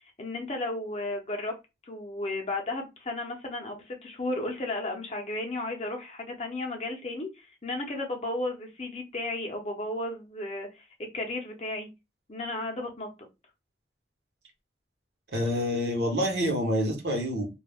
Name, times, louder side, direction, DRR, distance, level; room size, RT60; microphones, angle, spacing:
voice 1, 0.2-1.5 1.9-10.9 11.1-11.9 12.3-13.1, left 2 dB, 35° left, 2 dB, 0.6 m, -34 dB
voice 2, 15.3-17.5, equal, 70° right, 1 dB, 0.9 m, -27 dB
2.3 x 2.1 x 3.3 m, 0.25 s
head